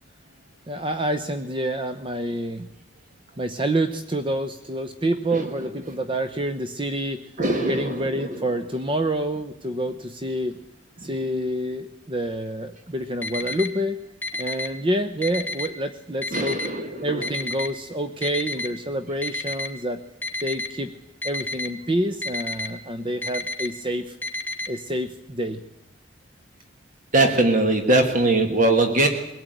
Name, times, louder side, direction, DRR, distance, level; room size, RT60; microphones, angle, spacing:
voice 1, 0.7-2.7 3.4-7.2 7.6-10.6 11.0-14.0 14.3-16.6 17.0-20.0 20.4-20.9 21.2-24.2 24.7-25.6, right 1 dB, 30° right, 9 dB, 0.9 m, -27 dB
voice 2, 7.4-8.4 11.0-11.1 16.3-17.3 27.1-29.1, right 2 dB, 45° right, 6 dB, 1.8 m, -21 dB
Alarm, 13.2-13.7 14.2-14.7 15.2-15.7 16.2-16.7 17.2-17.7 18.2-18.7 19.2-19.7 20.2-20.7 21.2-21.7 22.2-22.7 23.2-23.7 24.2-24.7, left 1 dB, 10° left, 2.2 m, -29 dB
22.5 x 16.5 x 9.2 m, 0.91 s
head